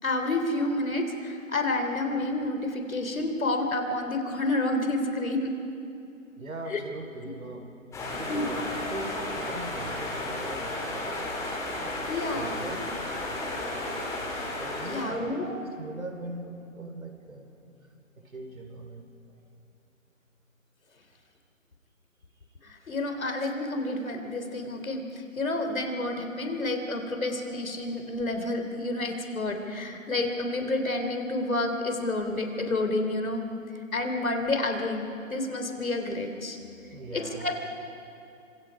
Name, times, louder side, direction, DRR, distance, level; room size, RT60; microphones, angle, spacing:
voice 1, 0.0-5.5 6.7-6.8 8.3-8.4 12.1-12.6 14.8-15.5 22.6-33.4 33.9-36.6 37.1-37.5, left 2 dB, 80° left, 4 dB, 3.5 m, -29 dB
voice 2, 6.4-7.6 8.0-11.3 12.3-12.8 14.2-17.6 18.2-19.4 36.9-37.5, right 2 dB, 85° right, 4 dB, 4.0 m, -40 dB
sound 1, 7.9-15.0, left 2 dB, 5° left, 2.8 m, -33 dB
27.0 x 26.0 x 4.8 m, 2.7 s
figure-of-eight pair, 150°, 40 cm